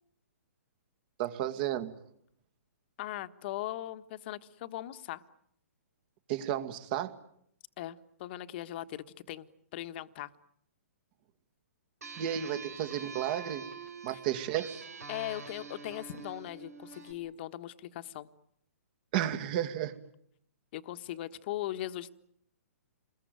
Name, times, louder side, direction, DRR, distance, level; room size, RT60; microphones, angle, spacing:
voice 1, 1.2-1.9 6.3-7.1 12.2-13.7 14.0-14.8 19.1-19.9, right 11 dB, 40° right, 9 dB, 2.3 m, -32 dB
voice 2, 3.0-5.2 7.8-10.3 14.1-14.2 15.1-18.3 20.7-22.1, left 14 dB, 45° left, 11 dB, 1.4 m, -39 dB
sound 1, 12.0-17.1, right 4 dB, 90° right, 3.8 m, -45 dB
28.5 x 21.5 x 9.4 m, 0.71 s
hypercardioid pair, 140°, 8 cm